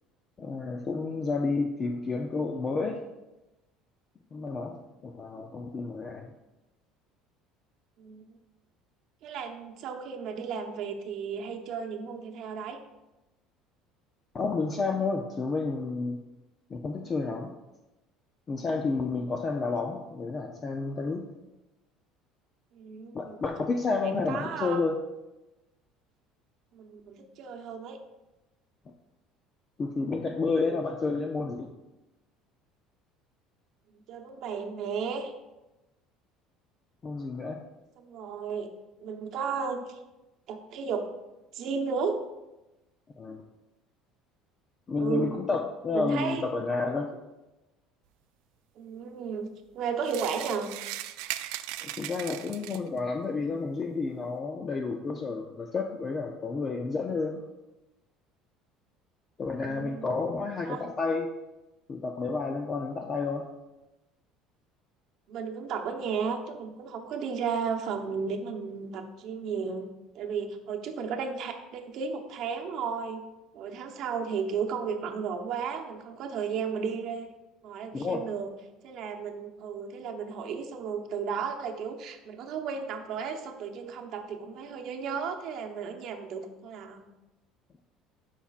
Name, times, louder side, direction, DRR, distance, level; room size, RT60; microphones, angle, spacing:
voice 1, 0.4-3.0 4.3-4.8 5.0-6.3 14.3-16.2 16.7-17.5 18.5-21.2 23.1-25.0 29.8-31.7 37.0-37.6 43.2-43.4 44.9-47.1 51.8-57.4 59.4-61.3 61.9-63.5 77.9-78.2, left 4 dB, 25° left, 3 dB, 0.5 m, -30 dB
voice 2, 8.0-8.3 9.2-12.8 19.1-19.4 22.7-23.4 24.3-24.8 26.7-28.0 30.6-30.8 34.1-35.3 38.0-38.7 39.0-40.0 40.5-41.1 41.5-42.2 45.0-45.3 45.9-46.4 47.0-47.2 48.8-50.7 59.6-60.2 60.7-60.9 65.3-69.9 70.1-73.2 73.5-77.3 77.6-78.5 78.8-87.1, right 6 dB, 50° right, 3 dB, 0.9 m, -34 dB
sound 1, 50.1-53.0, right 14 dB, 85° right, 0.3 m, -38 dB
11.5 x 5.7 x 2.4 m, 1.0 s
cardioid pair, 160°, 0 cm